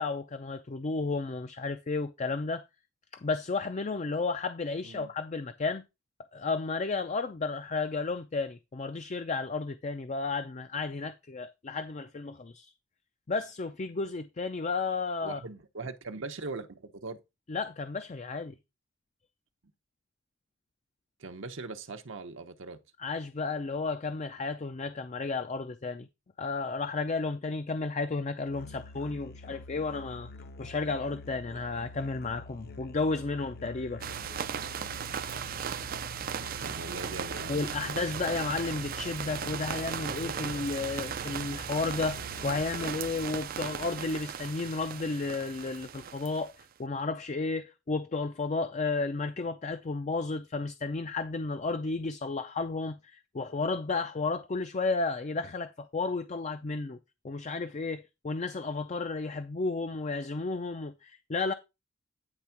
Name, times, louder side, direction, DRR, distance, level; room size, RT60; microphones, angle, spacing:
voice 1, 0.0-2.6 3.2-5.8 6.3-12.7 13.3-15.4 17.5-18.5 23.0-26.1 26.4-30.3 30.6-34.0 37.5-46.5 46.8-57.0 57.2-61.5, left 3 dB, 35° left, 0.5 m, -33 dB
voice 2, 15.2-17.2 21.2-22.8 36.6-37.8, right 3 dB, 70° right, 0.8 m, -40 dB
Musical instrument, 28.5-43.2, left 2 dB, 50° left, 0.8 m, -47 dB
sound 1, 34.0-46.6, right 7 dB, 45° right, 0.4 m, -37 dB
9.8 x 3.5 x 5.8 m
head